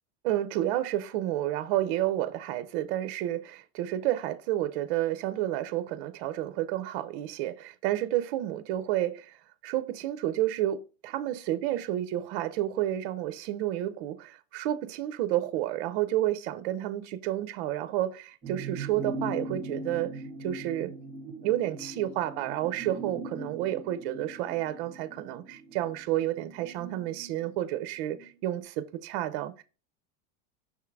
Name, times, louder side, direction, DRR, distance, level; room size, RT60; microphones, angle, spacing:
voice 1, 0.2-9.3 9.6-10.8 11.0-20.9 21.4-29.6, right 13 dB, 60° right, 0.6 m, -30 dB
sound 1, 18.4-28.3 28.6-28.7, right 2 dB, 20° right, 1.7 m, -40 dB
5.8 x 3.7 x 4.6 m
supercardioid pair, 160°, 32 cm